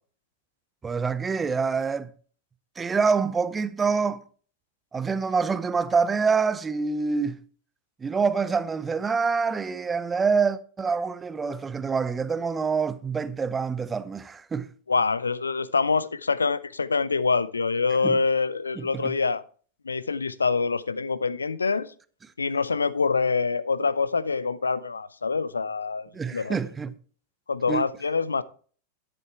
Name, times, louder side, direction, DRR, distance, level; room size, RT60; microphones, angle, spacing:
voice 1, 0.8-2.1 2.8-4.2 4.9-7.4 8.0-14.7 18.0-18.2 18.8-19.1 26.1-26.9 27.7-27.8, right 5 dB, 15° right, 0.7 m, -26 dB
voice 2, 14.9-19.4 19.8-21.9 22.4-26.6 27.5-28.4, left 4 dB, 75° left, 0.5 m, -25 dB
11.0 x 8.0 x 4.5 m
figure-of-eight pair, 90°, 0 cm